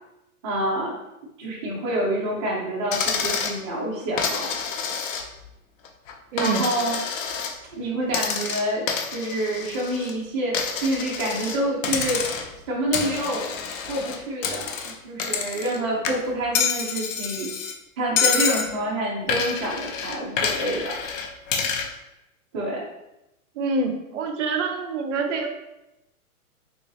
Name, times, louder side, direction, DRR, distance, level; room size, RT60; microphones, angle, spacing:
voice 1, 0.4-0.9 1.4-4.5 6.4-7.0 7.7-12.2 12.7-13.5 13.9-17.5 18.0-21.0 22.5-22.8, right 1 dB, 20° right, -5 dB, 0.4 m, -27 dB
Coin (dropping), 2.9-3.6 4.2-5.5 5.8-7.6 8.1-10.1 10.5-11.6 11.8-12.6 12.9-15.8 16.0-17.7 18.2-18.7 19.3-21.9, left 6 dB, 60° left, 0.6 m, -28 dB
voice 2, 6.3-6.6 23.5-25.5, right 4 dB, 55° right, 4 dB, 0.7 m, -26 dB
3.7 x 3.0 x 2.7 m, 0.90 s
hypercardioid pair, 145°, 44 cm